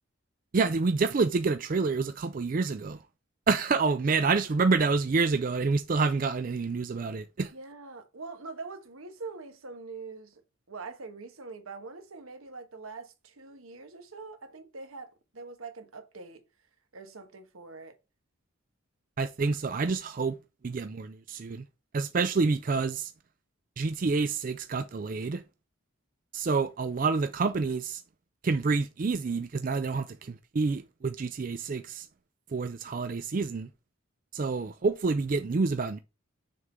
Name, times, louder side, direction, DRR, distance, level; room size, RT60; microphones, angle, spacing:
voice 1, 0.5-3.0 3.5-7.5 19.2-20.4 20.6-21.6 21.9-23.1 23.8-25.4 26.3-28.0 28.4-32.1 32.5-33.7 34.3-36.0, right 4 dB, 40° right, 0.4 m, -28 dB
voice 2, 4.2-4.5 7.5-10.4 10.7-16.4 16.9-18.0, right 4 dB, 85° right, 1.2 m, -44 dB
6.4 x 3.7 x 4.3 m
head